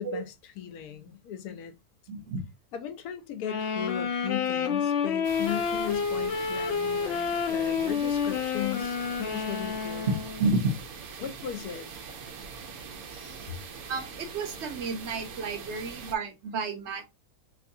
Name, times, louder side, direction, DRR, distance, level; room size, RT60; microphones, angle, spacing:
voice 1, 0.0-1.8 2.7-10.1 11.2-11.9 13.1-13.6 15.4-15.5, left 9 dB, 90° left, 1.2 m, -37 dB
voice 2, 2.1-2.4 10.4-10.7 13.9-17.1, right 3 dB, 55° right, 1.0 m, -31 dB
sound 1, 3.4-10.5, left 6 dB, 65° left, 0.7 m, -29 dB
sound 2, 5.2-16.2, right 5 dB, 80° right, 1.1 m, -43 dB
3.4 x 3.1 x 2.6 m
omnidirectional pair, 1.5 m